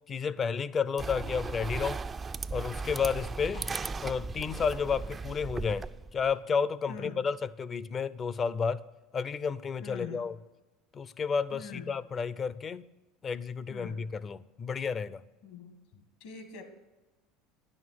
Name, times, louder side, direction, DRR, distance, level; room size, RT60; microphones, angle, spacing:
voice 1, 0.1-2.0 2.5-3.7 4.0-8.8 9.1-10.4 10.9-12.9 13.2-15.2, left 6 dB, 35° left, 17 dB, 0.5 m, -31 dB
sound 1, 1.0-6.3, right 4 dB, 25° right, 0.3 m, -37 dB
voice 2, 9.8-10.3 11.5-11.9 13.7-14.0 15.4-16.6, left 5 dB, 70° left, 7 dB, 1.7 m, -44 dB
10.5 x 6.5 x 7.6 m, 1.1 s
hypercardioid pair, 75°, 0 cm